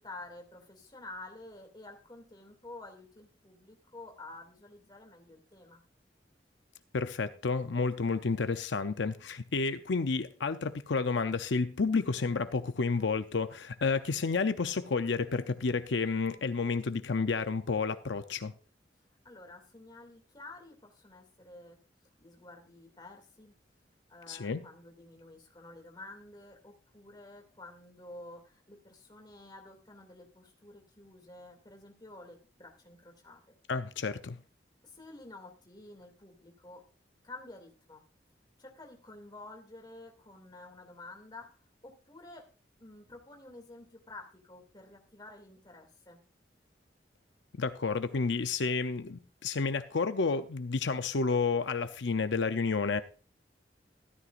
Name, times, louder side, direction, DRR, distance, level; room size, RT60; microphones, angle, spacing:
voice 1, 0.0-5.8 19.2-21.8 22.2-23.6 24.1-33.4 34.8-36.8 37.2-38.0 38.6-41.5 41.8-42.5 42.8-46.2, left 2 dB, 25° left, 2.5 m, -50 dB
voice 2, 6.9-18.5 24.3-24.6 33.7-34.4 47.6-53.0, left 4 dB, 85° left, 0.6 m, -30 dB
13.5 x 13.0 x 2.5 m
head